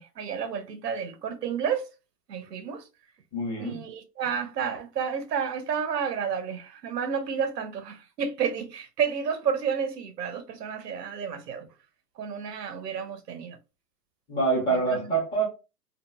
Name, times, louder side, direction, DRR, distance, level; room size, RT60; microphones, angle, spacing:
voice 1, 0.0-1.8 2.3-2.8 3.6-11.7 12.2-13.6 14.7-15.1, right 7 dB, 80° right, 0.7 m, -31 dB
voice 2, 3.3-3.8 14.3-15.5, right 3 dB, 10° left, 0.7 m, -26 dB
2.8 x 2.5 x 2.2 m
hypercardioid pair, 130°, 48 cm